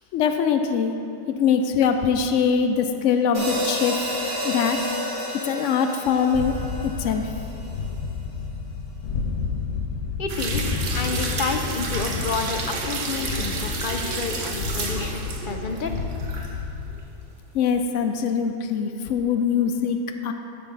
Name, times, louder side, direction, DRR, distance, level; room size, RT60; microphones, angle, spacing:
voice 1, 0.1-0.9 1.3-4.1 4.4-4.8 5.4-6.5 7.0-7.2 17.5-20.0 20.2-20.3, left 7 dB, 90° left, 7 dB, 0.9 m, -22 dB
sound 1, 3.3-7.7, equal, 40° right, 2.2 m, -30 dB
sound 2, 6.3-17.0, left 5 dB, 70° left, 1.1 m, -31 dB
voice 2, 10.2-15.9, left 4 dB, 55° left, 5 dB, 0.7 m, -30 dB
sound 3, 10.3-16.5 16.9-17.0, right 3 dB, 90° right, 1.3 m, -31 dB
11.5 x 7.8 x 4.0 m, 2.7 s
omnidirectional pair, 1.2 m